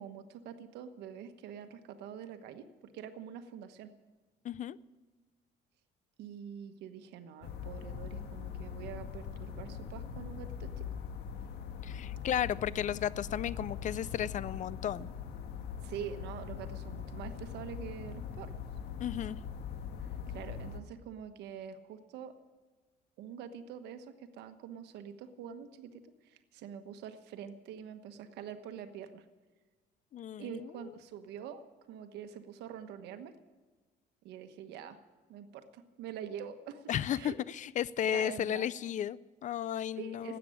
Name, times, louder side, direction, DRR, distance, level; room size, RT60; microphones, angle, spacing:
voice 1, 0.0-3.9 6.2-10.8 15.8-18.5 20.0-22.3 23.2-29.2 30.4-33.3 34.2-35.0 35.3-37.3 38.1-38.7 39.9-40.4, right 8 dB, 80° right, 9 dB, 1.2 m, -45 dB
voice 2, 4.4-4.8 11.8-15.1 19.0-19.4 30.1-30.7 36.9-40.4, left 10 dB, 45° left, 20 dB, 0.4 m, -34 dB
sound 1, 7.4-20.8, left 7 dB, 80° left, 1.5 m, -42 dB
13.0 x 9.1 x 9.8 m, 1.3 s
cardioid pair, 110°, 17 cm